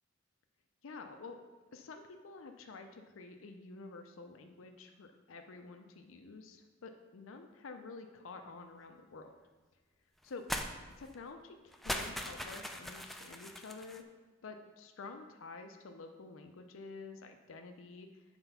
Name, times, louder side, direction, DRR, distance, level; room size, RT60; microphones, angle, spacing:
voice 1, 0.8-1.4 1.7-9.4 10.2-10.5 11.0-14.1 14.4-18.2, left 3 dB, 90° left, 5 dB, 0.6 m, -49 dB
sound 1, 10.5-10.7 11.0-11.2 11.7-14.0, equal, ahead, 0.5 m, -40 dB
7.9 x 4.4 x 5.6 m, 1.3 s
head